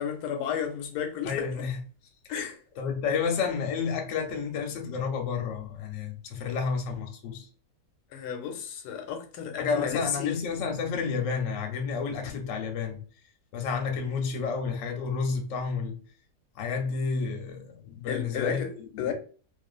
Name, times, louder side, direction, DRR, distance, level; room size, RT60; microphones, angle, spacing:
voice 1, 0.0-1.5 2.3-2.6 8.1-10.4 18.1-18.7 19.0-19.1, left 7 dB, 90° left, 1.2 m, -32 dB
voice 2, 1.2-1.8 2.8-7.5 9.6-13.0 13.5-16.0 16.6-19.1, left 5 dB, 65° left, 0.9 m, -30 dB
2.5 x 2.4 x 2.3 m
omnidirectional pair, 1.7 m